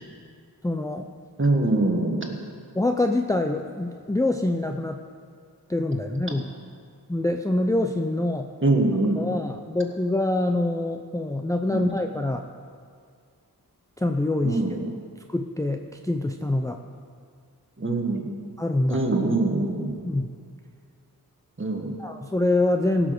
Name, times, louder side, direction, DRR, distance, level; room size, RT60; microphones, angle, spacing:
voice 1, 0.6-1.1 2.7-5.0 5.7-6.5 7.1-8.5 9.2-12.5 14.0-14.8 15.3-16.8 18.6-19.1 20.0-20.3 22.0-23.1, left 2 dB, 10° left, 4 dB, 0.5 m, -25 dB
voice 2, 1.4-2.3 8.6-9.2 11.7-11.9 14.4-14.9 17.8-18.3 18.9-19.9 21.6-22.0, right 2 dB, 30° right, 2 dB, 1.7 m, -23 dB
17.0 x 6.2 x 6.7 m, 2.1 s
wide cardioid pair, 65°, 39 cm